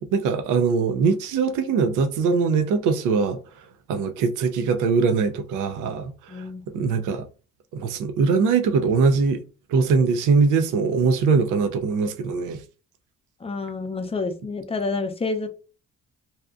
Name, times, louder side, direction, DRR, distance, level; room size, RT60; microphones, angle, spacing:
voice 1, 0.1-3.4 3.9-7.3 7.7-9.4 9.7-12.6, right 5 dB, 85° right, 0.5 m, -22 dB
voice 2, 6.3-6.6 13.4-15.5, left 3 dB, 20° left, 0.4 m, -28 dB
2.7 x 2.2 x 2.4 m
cardioid pair, 90°, 30 cm